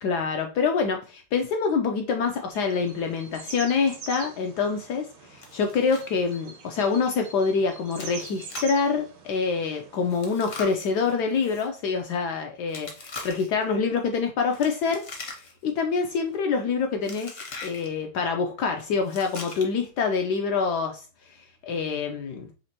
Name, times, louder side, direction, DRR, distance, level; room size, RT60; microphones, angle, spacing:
voice 1, 0.0-21.0 21.3-22.5, left 5 dB, 75° left, 0.9 m, -26 dB
sound 1, 2.5-10.4, right 5 dB, 85° right, 1.7 m, -44 dB
Chewing mastication, 5.4-6.1 6.3-6.4 6.9-7.1 7.9-8.8 10.1-11.7 12.7-13.6 14.5-15.7 16.0-16.3 17.0-17.9 19.0-19.9, left 3 dB, 50° left, 0.7 m, -41 dB
4.3 x 2.9 x 2.8 m
omnidirectional pair, 2.2 m